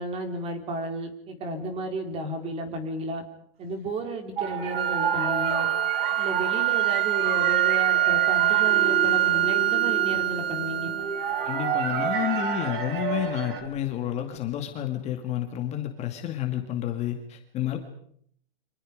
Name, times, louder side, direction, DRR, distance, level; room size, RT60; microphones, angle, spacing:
voice 1, 0.0-3.2 3.6-5.7 6.2-10.9, right 2 dB, 20° right, 6 dB, 4.0 m, -33 dB
sound 1, 4.4-13.6, right 6 dB, 60° right, 6.6 m, -32 dB
sound 2, 4.7-12.8, right 13 dB, 75° right, 1.1 m, -25 dB
voice 2, 11.4-17.8, left 12 dB, 20° left, 4 dB, 2.2 m, -30 dB
29.5 x 25.5 x 5.2 m, 0.66 s
hypercardioid pair, 150°, 30 cm